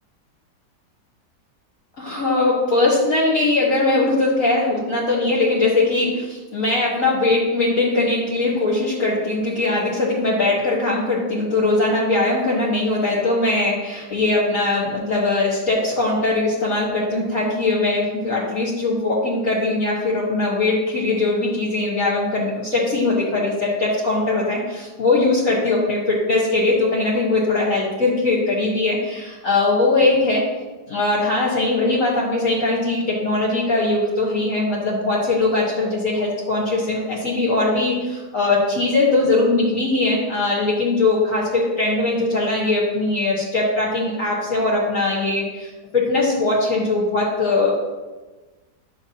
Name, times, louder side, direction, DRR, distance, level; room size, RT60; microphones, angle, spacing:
voice 1, 2.0-30.4 30.9-47.8, left 2 dB, 50° left, -6 dB, 1.9 m, -20 dB
10.0 x 7.0 x 2.9 m, 1.2 s
omnidirectional pair, 1.8 m